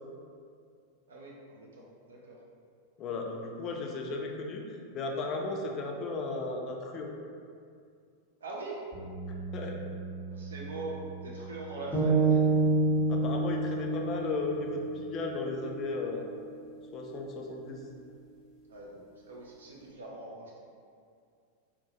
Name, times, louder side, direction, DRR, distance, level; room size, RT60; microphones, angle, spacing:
voice 1, 1.1-2.4 8.4-8.9 10.3-12.5 18.7-20.6, right 2 dB, 65° right, -3 dB, 0.3 m, -42 dB
voice 2, 3.0-7.1 9.5-9.8 13.1-16.2 16.9-17.8, left 3 dB, 35° left, 1 dB, 0.3 m, -35 dB
sound 1, 8.9-15.2, right 4 dB, 40° right, 0.9 m, -44 dB
sound 2, 11.9-16.1, right 3 dB, 5° left, 0.8 m, -28 dB
2.6 x 2.1 x 2.8 m, 2.3 s
figure-of-eight pair, 90°, 0 cm